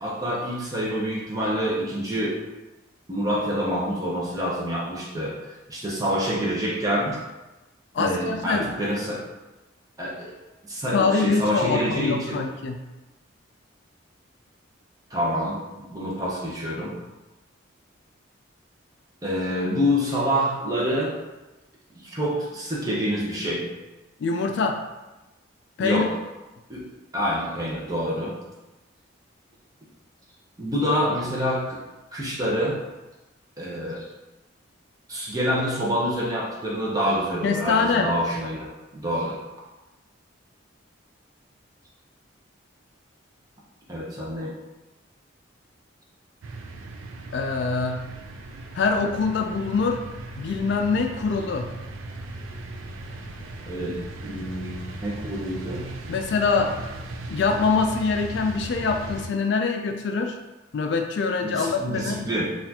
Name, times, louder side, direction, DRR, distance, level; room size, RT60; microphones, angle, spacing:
voice 1, 0.0-2.4 3.1-7.2 8.0-9.2 10.0-10.3 10.7-12.4 15.1-15.6 15.9-16.9 19.2-21.1 22.0-23.6 25.8-26.1 26.7-26.8 27.1-28.3 30.6-31.8 32.1-32.8 33.6-34.0 35.1-39.4 43.9-44.5 53.7-56.0 56.6-56.7 61.4-62.5, equal, 20° right, -5 dB, 0.7 m, -27 dB
voice 2, 7.9-8.7 10.9-12.8 24.2-24.8 25.8-26.1 37.4-38.1 47.3-48.1 48.7-50.0 50.4-51.7 56.1-56.7 57.3-60.4 60.7-62.3, left 4 dB, 60° left, 4 dB, 0.3 m, -24 dB
sound 1, 46.4-59.3, right 2 dB, 85° right, 0.4 m, -38 dB
4.1 x 2.4 x 2.8 m, 1.1 s
head